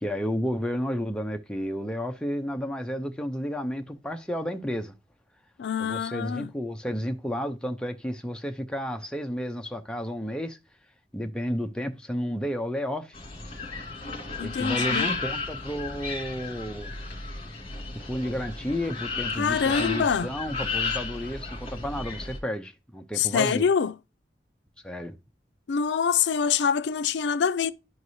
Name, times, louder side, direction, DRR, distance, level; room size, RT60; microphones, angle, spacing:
voice 1, 0.0-4.9 5.8-10.6 11.1-13.2 14.4-16.9 17.9-23.7 24.8-25.2, equal, 5° left, 0.6 m, -32 dB
voice 2, 5.6-6.5 14.4-15.1 19.4-20.3 23.2-23.9 25.7-27.7, left 6 dB, 85° left, 0.4 m, -25 dB
sound 1, 13.1-22.4, left 4 dB, 35° left, 2.1 m, -33 dB
10.5 x 4.7 x 2.7 m
head